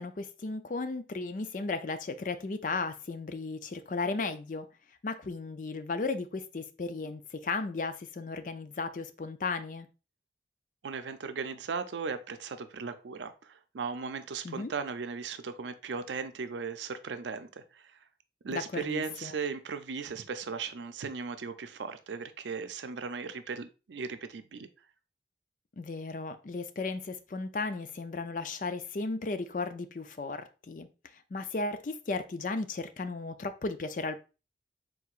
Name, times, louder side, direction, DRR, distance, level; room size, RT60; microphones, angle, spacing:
voice 1, 0.0-4.7 5.0-9.9 14.4-14.7 18.5-19.3 25.8-30.9 31.1-34.3, left 3 dB, 45° left, 0.4 m, -35 dB
voice 2, 10.8-18.0 18.4-24.7, right 5 dB, 90° right, 0.5 m, -37 dB
4.7 x 3.9 x 2.4 m
head